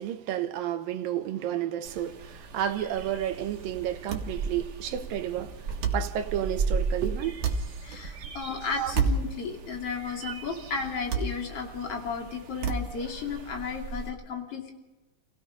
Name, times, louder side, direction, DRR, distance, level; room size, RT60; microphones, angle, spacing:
voice 1, 0.0-5.7 5.9-7.4 8.2-8.3 8.8-8.9, right 11 dB, 85° right, 2.8 m, -31 dB
Philadelphia suburb bird songs, 1.8-14.1, right 4 dB, 55° right, 1.2 m, -37 dB
sound 1, 2.9-13.4, right 5 dB, 70° right, 3.3 m, -34 dB
voice 2, 7.8-14.7, left 5 dB, 45° left, 3.4 m, -34 dB
29.5 x 17.0 x 5.2 m
omnidirectional pair, 4.0 m